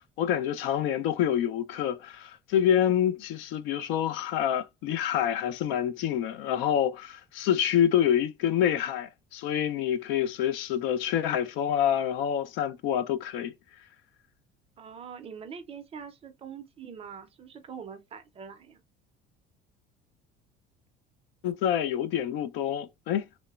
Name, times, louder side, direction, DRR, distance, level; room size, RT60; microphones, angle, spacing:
voice 1, 0.2-13.5 21.4-23.2, left 10 dB, 70° left, 0.4 m, -27 dB
voice 2, 14.8-18.8, right 7 dB, 30° right, 0.4 m, -43 dB
3.0 x 2.0 x 2.3 m
cardioid pair, 135°, 21 cm